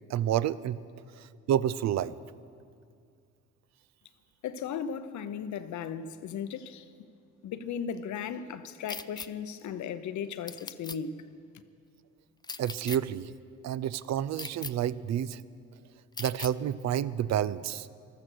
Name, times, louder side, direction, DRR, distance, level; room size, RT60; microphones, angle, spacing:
voice 1, 0.1-0.8 1.2-2.2 12.6-13.3 13.6-15.4 16.2-17.9, right 10 dB, 65° right, 0.5 m, -29 dB
voice 2, 4.4-6.9 7.4-11.2, left 7 dB, 70° left, 0.8 m, -36 dB
sound 1, 8.9-9.3 10.5-11.0 12.4-13.0 14.4-14.7 16.2-16.5, left 4 dB, 15° left, 0.4 m, -39 dB
14.5 x 13.0 x 6.3 m
cardioid pair, 90°, 30 cm